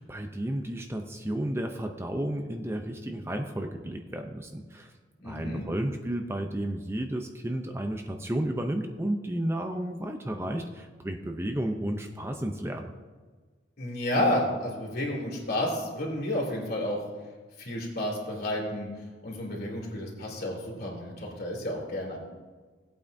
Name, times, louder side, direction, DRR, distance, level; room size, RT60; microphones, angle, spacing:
voice 1, 0.0-4.9 5.2-12.9, right 1 dB, 15° right, 4 dB, 0.6 m, -32 dB
voice 2, 5.2-5.7 13.8-17.0 17.6-18.9 19.2-22.2, left 1 dB, 55° left, -2 dB, 3.1 m, -31 dB
18.5 x 8.6 x 2.7 m, 1.4 s
head